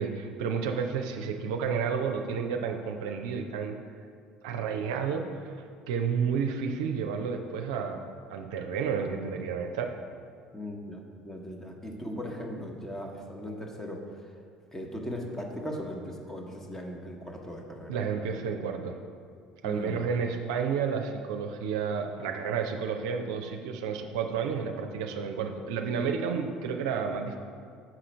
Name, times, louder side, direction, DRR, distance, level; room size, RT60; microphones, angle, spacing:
voice 1, 0.0-3.8 4.4-8.0 8.3-9.9 17.9-19.0 19.6-27.4, right 6 dB, 75° right, 4 dB, 0.5 m, -31 dB
voice 2, 10.5-14.0 14.7-18.0 19.6-20.0, equal, 15° left, 1 dB, 1.1 m, -38 dB
6.1 x 4.9 x 4.5 m, 2.2 s
hypercardioid pair, 65°, 3 cm